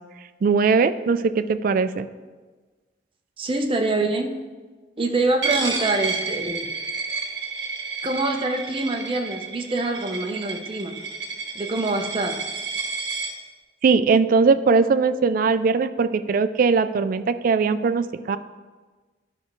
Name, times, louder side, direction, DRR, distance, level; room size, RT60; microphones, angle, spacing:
voice 1, 0.4-2.1 13.8-18.4, right 4 dB, 50° right, 11 dB, 0.3 m, -20 dB
voice 2, 3.4-4.3 5.0-6.7 8.0-10.9 11.5-12.3, right 2 dB, 30° right, 3 dB, 0.7 m, -25 dB
Coin (dropping), 5.4-13.3, right 4 dB, 80° right, 1.1 m, -30 dB
12.0 x 5.3 x 3.1 m, 1.3 s
head